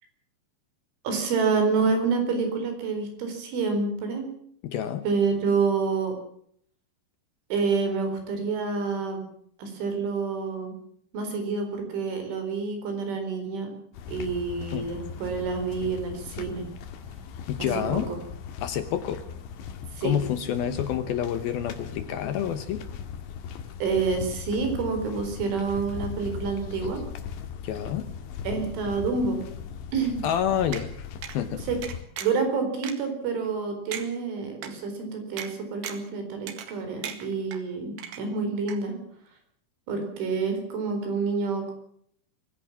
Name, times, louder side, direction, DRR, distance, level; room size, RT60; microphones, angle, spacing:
voice 1, 1.0-4.3 5.0-6.1 7.5-9.2 9.6-10.7 11.1-13.7 14.1-16.7 17.6-18.2 19.9-20.1 23.8-27.1 28.4-29.4 29.9-30.3 31.7-31.8 32.2-39.0 39.9-41.7, right 4 dB, 85° right, 6 dB, 6.7 m, -28 dB
voice 2, 4.6-5.0 14.7-14.9 17.5-18.1 18.6-19.2 20.0-22.8 27.6-28.1 30.2-31.1 31.3-31.6, left 9 dB, 70° left, 11 dB, 2.5 m, -28 dB
sound 1, 13.9-32.0, left 7 dB, 85° left, 4.2 m, -39 dB
sound 2, 30.7-30.9 31.2-31.4 31.8-32.4 32.8-32.9 33.5-33.6 33.9-34.1 34.6-34.7 35.4-35.5 35.8-36.1 36.5-36.8 37.0-37.6 38.0-38.4 38.7-38.8, right 9 dB, 70° right, 3.9 m, -36 dB
23.5 x 15.5 x 7.3 m, 0.64 s
omnidirectional pair, 5.3 m